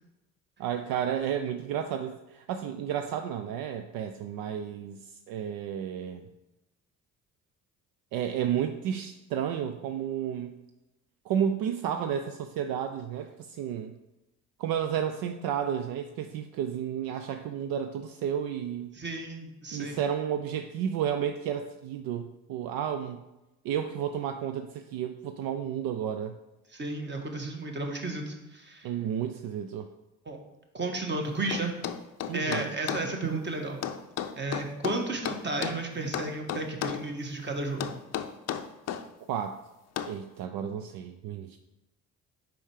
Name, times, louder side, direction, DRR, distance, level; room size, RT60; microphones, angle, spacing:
voice 1, 0.6-5.0 5.3-6.3 8.1-10.5 11.3-13.9 14.6-18.9 19.7-23.2 23.6-26.4 28.8-29.9 32.3-32.7 39.3-39.6 40.1-41.6, right 9 dB, 65° right, 7 dB, 0.5 m, -32 dB
voice 2, 18.9-20.0 26.7-28.9 30.2-30.4 30.7-31.7 32.3-33.8 34.4-37.9, right 2 dB, 30° right, 3 dB, 1.4 m, -33 dB
sound 1, 31.5-33.1 33.8-35.8 36.1-37.1 37.8-39.1 40.0-40.2, left 9 dB, 45° left, 0.5 m, -33 dB
5.3 x 4.6 x 4.9 m, 0.97 s
supercardioid pair, 65°, 37 cm